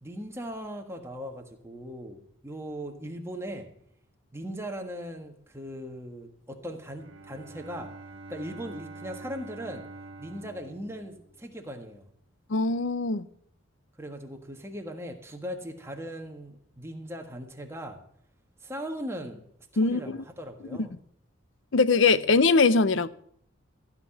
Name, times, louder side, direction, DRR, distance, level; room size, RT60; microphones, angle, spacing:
voice 1, 0.0-3.7 4.3-7.9 8.3-9.8 10.2-12.0 14.0-18.0 18.6-19.4 19.8-20.9, equal, 10° right, 1.5 m, -39 dB
Bowed string instrument, 6.8-11.7, right 2 dB, 70° right, 1.4 m, -46 dB
voice 2, 12.5-13.3 19.8-20.2 21.7-23.1, left 4 dB, 65° left, 0.6 m, -22 dB
15.5 x 5.9 x 9.9 m
head